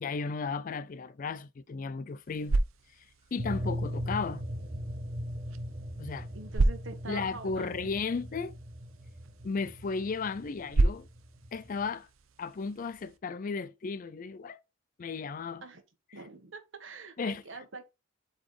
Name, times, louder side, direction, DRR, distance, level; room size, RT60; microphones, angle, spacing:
voice 1, 0.0-2.6 3.0-3.1 3.3-4.4 6.0-6.3 7.1-8.5 9.4-11.1 11.5-12.1 12.4-14.6 15.0-15.6 16.1-16.2 17.2-17.6, left 4 dB, 40° left, 0.4 m, -35 dB
sound 1, 2.1-13.2, right 2 dB, 85° right, 0.8 m, -34 dB
sound 2, 3.4-11.9, equal, 45° right, 1.3 m, -39 dB
voice 2, 6.3-7.9 15.6-15.8 16.1-17.9, right 3 dB, 65° right, 1.3 m, -45 dB
8.6 x 4.1 x 3.2 m
head